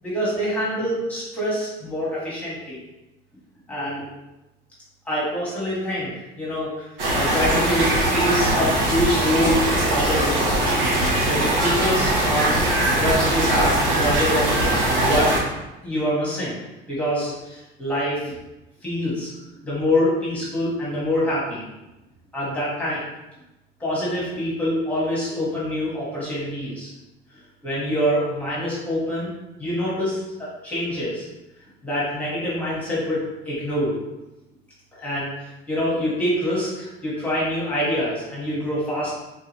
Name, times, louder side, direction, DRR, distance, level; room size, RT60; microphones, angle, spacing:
voice 1, 0.0-2.8 3.7-4.0 5.0-6.9 7.1-10.5 11.2-12.6 12.9-14.5 15.0-15.3 15.8-16.6 16.9-18.3 18.8-19.3 19.6-21.7 22.3-23.0 23.8-26.9 27.6-29.3 29.6-31.2 31.8-34.0 34.9-39.1, equal, 5° left, -8 dB, 1.4 m, -25 dB
sound 1, 7.0-15.4, right 1 dB, 70° right, 1.2 m, -21 dB
3.8 x 3.6 x 3.0 m, 0.98 s
cardioid pair, 175°, 20 cm